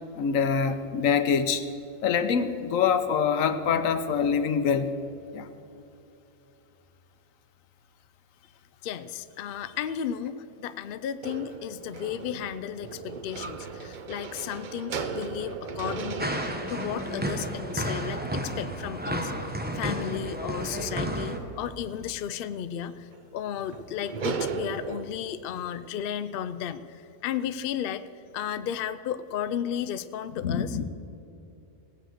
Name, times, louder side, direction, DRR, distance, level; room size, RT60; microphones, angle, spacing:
voice 1, 0.2-1.6 2.0-4.9 5.3-5.5 30.4-30.8, left 6 dB, 80° left, 10 dB, 1.1 m, -25 dB
voice 2, 8.8-16.4 16.7-28.0 28.3-30.8, left 9 dB, 60° left, 12 dB, 0.6 m, -34 dB
sound 1, 11.2-20.2 23.1-23.2 23.6-25.0, right 5 dB, 50° right, 0.7 m, -37 dB
sound 2, 16.2-21.4, right 1 dB, 10° right, 0.7 m, -32 dB
17.5 x 7.8 x 6.5 m, 2.8 s
omnidirectional pair, 1.4 m